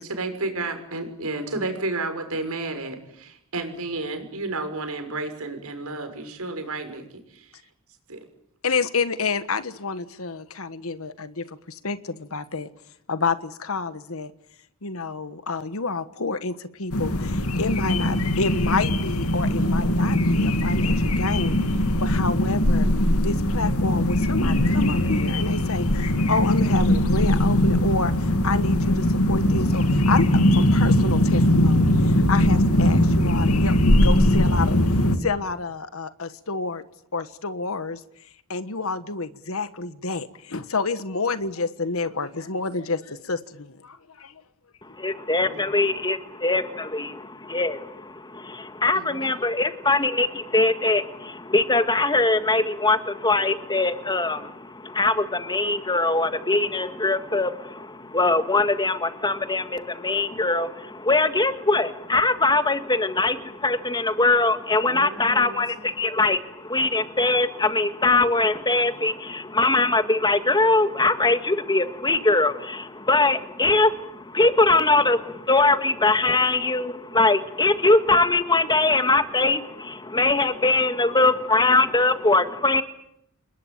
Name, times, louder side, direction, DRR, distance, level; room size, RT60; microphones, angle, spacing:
voice 1, 0.0-7.6 8.1-8.2 45.4-45.6 48.9-49.3 64.8-65.9, right 2 dB, 80° right, 6 dB, 6.3 m, -32 dB
voice 2, 8.6-12.7 13.1-14.3 14.8-21.5 22.0-22.9 23.2-34.8 35.2-36.8 37.1-38.0 38.5-44.4, left 4 dB, 70° left, 13 dB, 1.3 m, -29 dB
sound 1, 16.9-35.2, left 1 dB, 85° left, 2.6 m, -20 dB
voice 3, 45.0-82.8, left 2 dB, 20° left, 9 dB, 1.9 m, -22 dB
29.0 x 20.5 x 9.1 m, 0.76 s
head